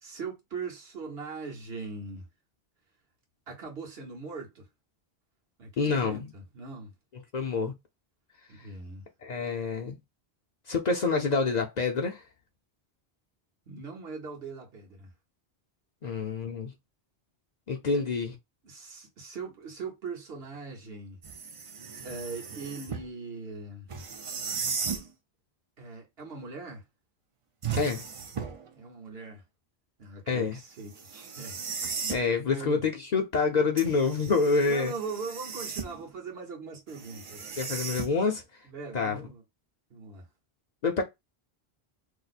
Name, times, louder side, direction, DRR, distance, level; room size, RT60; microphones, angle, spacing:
voice 1, 0.0-2.3 3.5-4.7 5.6-6.9 8.5-9.0 13.7-15.1 17.9-18.0 18.6-21.2 22.0-23.9 25.8-26.8 28.7-29.4 30.0-31.6 32.0-32.1 32.5-32.8 34.7-37.5 38.6-39.4 39.9-40.3, right 4 dB, 75° right, 1.3 m, -40 dB
voice 2, 5.8-6.3 7.3-7.7 9.2-10.0 10.7-12.2 16.0-16.7 17.7-18.3 27.8-28.0 30.3-30.6 32.1-34.9 37.6-38.4 38.9-39.2 40.8-41.0, left 4 dB, 50° left, 0.6 m, -27 dB
sound 1, 21.2-23.1 23.9-25.1 27.6-28.7 30.9-32.3 33.8-36.1 36.9-38.4, right 6 dB, 45° right, 0.4 m, -36 dB
2.9 x 2.0 x 4.0 m
omnidirectional pair, 1.1 m